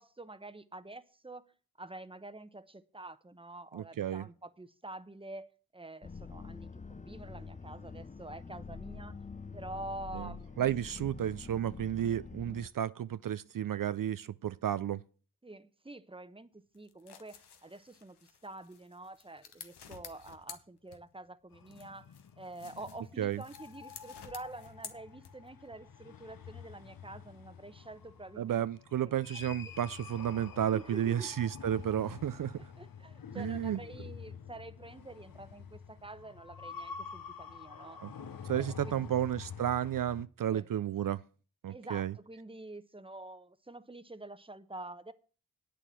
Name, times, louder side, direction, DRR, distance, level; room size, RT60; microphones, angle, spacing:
voice 1, 0.0-1.5 1.8-9.2 9.5-10.6 15.4-28.6 29.0-29.1 30.7-31.3 32.8-38.0 38.5-39.3 40.5-40.7 41.7-45.1, right 2 dB, 15° right, 0.9 m, -47 dB
voice 2, 3.7-4.3 10.1-10.3 10.6-15.0 23.2-23.4 28.4-32.6 33.3-33.8 38.0-38.1 38.5-41.2 41.6-42.1, right 10 dB, 55° right, 0.5 m, -32 dB
sound 1, 6.0-12.7, left 5 dB, 20° left, 0.5 m, -46 dB
sound 2, 16.7-21.3 21.7-25.6, left 7 dB, 85° left, 1.2 m, -52 dB
sound 3, 21.5-40.3, left 6 dB, 60° left, 1.0 m, -48 dB
8.9 x 6.9 x 7.5 m
cardioid pair, 50°, 39 cm